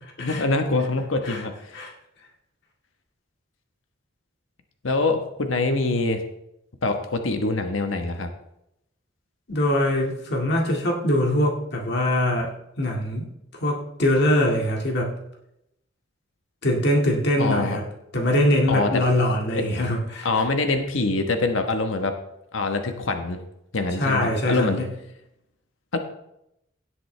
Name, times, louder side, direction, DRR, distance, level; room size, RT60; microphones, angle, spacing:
voice 1, 0.2-1.8 4.8-6.2 6.8-8.3 17.4-17.8 18.7-19.0 19.5-19.6 20.2-22.1 22.5-23.4 23.7-24.8 25.9-26.0, left 3 dB, 80° left, 6 dB, 1.2 m, -24 dB
voice 2, 9.5-12.5 12.8-13.3 13.6-15.2 16.6-17.8 18.1-20.3 24.0-24.9, left 1 dB, 55° left, 0 dB, 2.0 m, -22 dB
17.0 x 7.8 x 3.3 m, 0.81 s
head